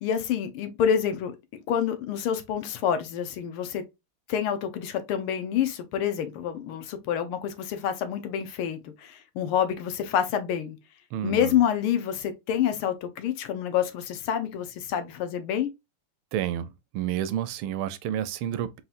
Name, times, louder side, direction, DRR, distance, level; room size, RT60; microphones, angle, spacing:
voice 1, 0.0-1.3 1.7-3.8 4.3-10.8 11.2-15.7, left 9 dB, 80° left, 1.6 m, -27 dB
voice 2, 11.1-11.6 16.3-16.7 16.9-18.8, right 10 dB, 80° right, 1.4 m, -30 dB
4.3 x 4.0 x 2.4 m
omnidirectional pair, 2.4 m